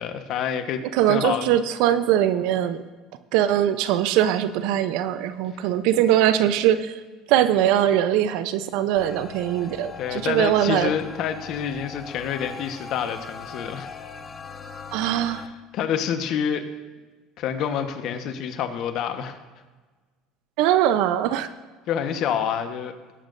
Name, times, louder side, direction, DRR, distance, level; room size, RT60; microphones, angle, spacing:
voice 1, 0.0-1.4 10.0-13.9 15.3-16.6 17.4-19.4 21.9-22.9, left 8 dB, 60° left, 7 dB, 1.2 m, -28 dB
voice 2, 0.9-2.8 3.3-7.0 7.3-10.9 14.9-15.4 20.6-21.5, right 11 dB, 75° right, 12 dB, 0.7 m, -21 dB
sound 1, 9.0-15.5, left 5 dB, 25° left, 1.0 m, -40 dB
18.5 x 8.6 x 2.6 m, 1.3 s
supercardioid pair, 105°, 0 cm